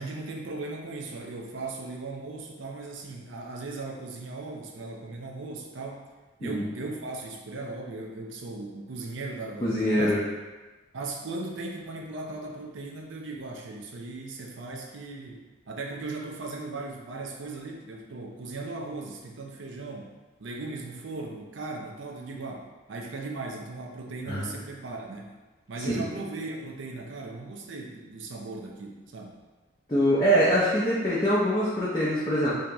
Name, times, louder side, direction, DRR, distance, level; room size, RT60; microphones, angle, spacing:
voice 1, 0.0-6.1 6.4-10.1 10.9-25.4 25.7-29.3, right 3 dB, 65° right, 1 dB, 0.5 m, -38 dB
voice 2, 9.6-10.2 24.3-24.5 25.9-26.0 29.9-32.5, equal, 20° left, -9 dB, 0.5 m, -23 dB
3.0 x 2.8 x 3.4 m, 1.2 s
head